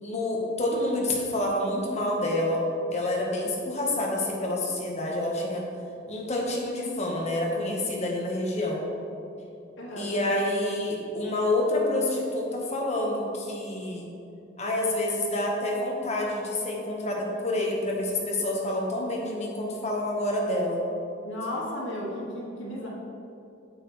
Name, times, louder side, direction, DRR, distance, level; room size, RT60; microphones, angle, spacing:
voice 1, 0.0-2.6 2.9-5.6 6.1-8.8 10.0-14.1 14.6-20.8, left 1 dB, 35° left, -2 dB, 1.4 m, -28 dB
voice 2, 9.8-10.1 21.2-22.9, left 1 dB, 85° left, -5 dB, 2.0 m, -34 dB
8.7 x 8.4 x 3.3 m, 2.7 s
head